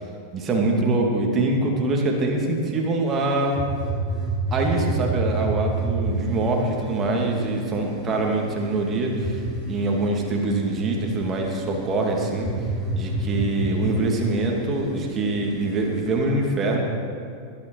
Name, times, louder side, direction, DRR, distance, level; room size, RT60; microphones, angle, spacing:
voice 1, 0.3-3.5 4.5-12.5 13.0-16.8, right 2 dB, 25° right, 0 dB, 2.5 m, -24 dB
sound 1, 3.0-16.2, right 1 dB, 10° left, 3.7 m, -30 dB
21.5 x 9.9 x 4.8 m, 2.4 s
figure-of-eight pair, 90°, 0 cm